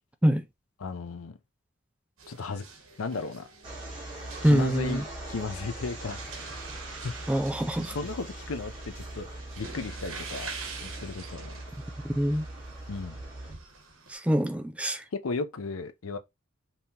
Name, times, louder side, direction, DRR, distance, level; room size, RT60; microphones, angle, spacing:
voice 1, 0.8-1.4 2.3-2.6 3.0-3.5 4.4-6.2 7.0-7.1 7.9-9.3 9.6-10.5 10.8-11.5 12.9-13.2 15.1-16.2, left 4 dB, 90° left, 0.6 m, -35 dB
sound 1, 2.2-14.1, right 4 dB, 70° right, 1.3 m, -45 dB
sound 2, 3.6-13.5, right 1 dB, 25° right, 2.9 m, -41 dB
voice 2, 4.4-5.0 7.3-8.0 12.0-12.5 14.1-15.0, equal, 5° right, 0.4 m, -25 dB
5.4 x 2.9 x 2.8 m
head